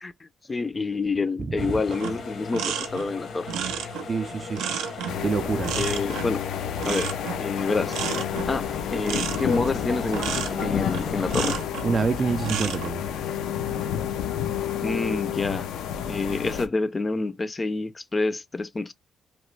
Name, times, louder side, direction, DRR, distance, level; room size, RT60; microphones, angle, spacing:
voice 1, 0.0-3.5 3.8-3.9 5.8-6.4 6.9-7.1 7.4-8.0 8.5-11.6 14.8-15.7 16.0-18.9, left 3 dB, 25° left, 0.4 m, -28 dB
voice 2, 1.4-1.7 4.1-4.7 5.2-5.9 11.8-13.1, right 5 dB, 40° right, 0.4 m, -27 dB
sound 1, 1.6-11.6, left 4 dB, 65° left, 1.0 m, -36 dB
sound 2, 1.9-11.9 12.3-12.9, right 8 dB, 90° right, 0.5 m, -32 dB
sound 3, 5.1-16.7, left 9 dB, 85° left, 0.5 m, -30 dB
3.0 x 2.1 x 3.2 m
cardioid pair, 90°, 0 cm